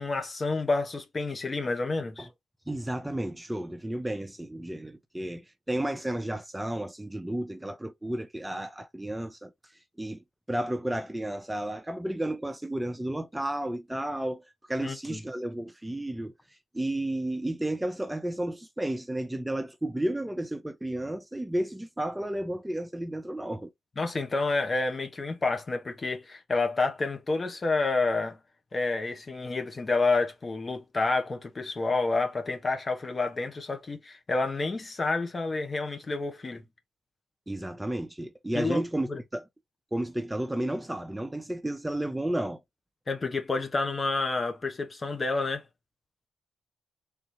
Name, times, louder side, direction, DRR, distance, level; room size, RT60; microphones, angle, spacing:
voice 1, 0.0-2.3 14.8-15.2 24.0-28.4 28.7-36.6 38.5-38.8 39.1-39.2 43.1-45.6, left 3 dB, 35° left, 1.2 m, -29 dB
voice 2, 2.7-9.5 10.0-16.3 16.7-23.7 37.5-39.4 39.9-42.6, right 1 dB, 10° right, 0.6 m, -32 dB
3.6 x 3.2 x 2.9 m
supercardioid pair, 55°, 0 cm